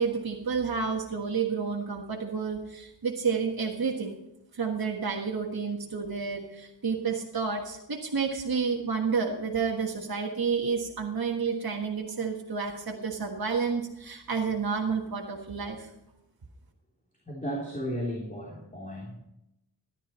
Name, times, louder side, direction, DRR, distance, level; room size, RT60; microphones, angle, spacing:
voice 1, 0.0-4.1 4.5-15.9, right 5 dB, 55° right, 0 dB, 1.5 m, -30 dB
voice 2, 17.2-19.2, equal, 20° left, -2 dB, 3.1 m, -34 dB
13.5 x 11.0 x 4.3 m, 0.85 s
wide cardioid pair, 60°, 43 cm